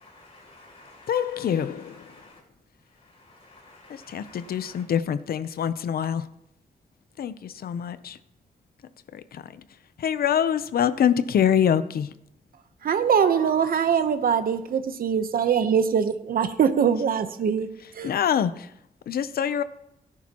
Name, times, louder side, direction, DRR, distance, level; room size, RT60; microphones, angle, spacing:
voice 1, 0.0-2.4 2.8-4.9 13.2-13.9 14.3-14.4, left 1 dB, 40° left, 5.9 m, -47 dB
voice 2, 1.1-2.0 3.9-6.2 7.2-8.2 9.1-9.6 10.0-12.1 18.0-18.7 19.1-19.6, left 9 dB, 80° left, 0.6 m, -25 dB
voice 3, 12.8-17.7 17.9-18.1, right 7 dB, 70° right, 0.9 m, -23 dB
18.0 x 10.5 x 3.0 m
wide cardioid pair, 140°, 15 cm